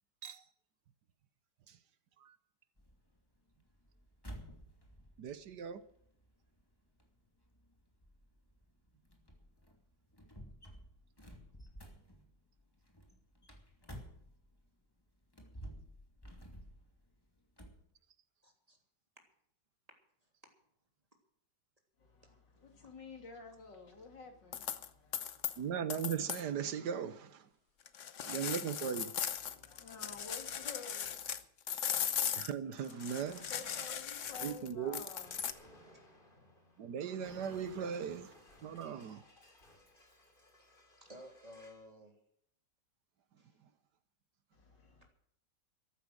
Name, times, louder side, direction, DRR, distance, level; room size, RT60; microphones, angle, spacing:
sound 1, 2.8-14.7 15.2-17.8, equal, 15° left, 2.6 m, -53 dB
voice 1, 5.2-5.8 25.6-27.4 28.2-29.1 32.3-33.5 34.4-35.0 36.8-38.3 38.6-39.2, right 8 dB, 70° right, 1.5 m, -38 dB
voice 2, 18.4-18.8 20.4-20.5 22.2-22.3 40.6-42.2 43.4-43.6, equal, 20° right, 3.2 m, -55 dB
voice 3, 22.0-25.7 29.4-31.5 33.3-35.9 44.5-45.1, left 4 dB, 80° left, 3.2 m, -52 dB
sound 2, 24.5-24.9 25.1-25.6 25.9-26.4 27.9-31.4 31.7-35.5, left 8 dB, 50° left, 1.1 m, -38 dB
Explosion, 35.2-41.9, left 1 dB, 30° left, 3.0 m, -61 dB
14.5 x 12.0 x 6.3 m
omnidirectional pair, 1.9 m